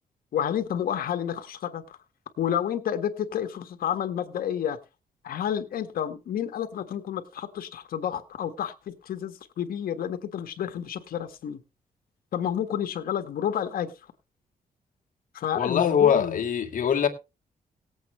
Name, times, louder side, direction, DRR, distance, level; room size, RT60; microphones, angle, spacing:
voice 1, 0.3-2.0 2.4-4.8 5.2-11.6 12.3-13.9 15.3-16.4, left 9 dB, 80° left, 1.5 m, -30 dB
voice 2, 15.6-17.1, left 7 dB, 65° left, 1.9 m, -23 dB
18.5 x 8.1 x 3.2 m
cardioid pair, 100°, 15 cm